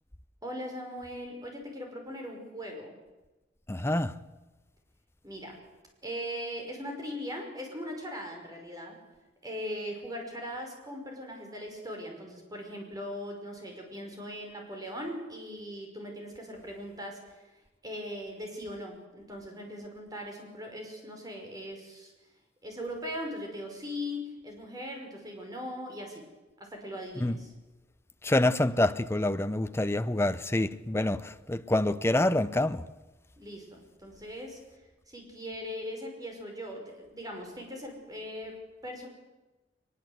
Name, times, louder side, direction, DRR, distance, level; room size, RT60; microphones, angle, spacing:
voice 1, 0.4-3.0 5.2-5.6 6.0-9.0 9.4-17.4 17.8-22.1 22.6-26.2 26.6-27.5 33.4-34.6 35.1-39.1, equal, 20° right, 5.3 m, -40 dB
voice 2, 3.7-4.2 27.2-27.4 28.2-32.8, left 1 dB, 15° left, 0.7 m, -27 dB
22.5 x 21.0 x 8.0 m
head